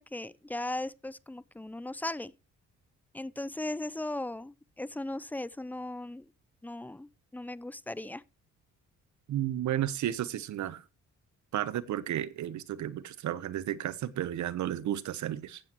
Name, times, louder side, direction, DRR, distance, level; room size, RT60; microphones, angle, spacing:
voice 1, 0.0-2.3 3.1-6.3 6.6-8.2, left 1 dB, 5° left, 0.5 m, -37 dB
voice 2, 9.3-10.8 11.5-15.6, right 11 dB, 70° right, 1.0 m, -33 dB
15.5 x 8.2 x 3.1 m
cardioid pair, 90°, 30 cm